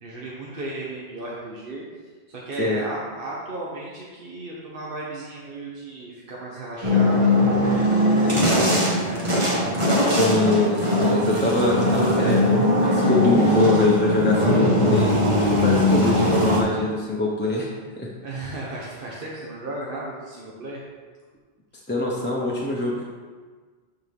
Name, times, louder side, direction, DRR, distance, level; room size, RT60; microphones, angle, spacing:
voice 1, 0.0-1.8 2.3-8.0 9.0-10.2 18.2-20.8, right 2 dB, 55° right, -5 dB, 1.4 m, -35 dB
sound 1, 6.8-16.6, left 1 dB, 30° right, 1.4 m, -20 dB
voice 2, 10.2-15.1 15.6-17.7 18.0-18.1 18.5-18.6 21.9-23.0, left 2 dB, 10° left, -5 dB, 0.9 m, -23 dB
12.5 x 4.7 x 3.6 m, 1.5 s
omnidirectional pair, 1.1 m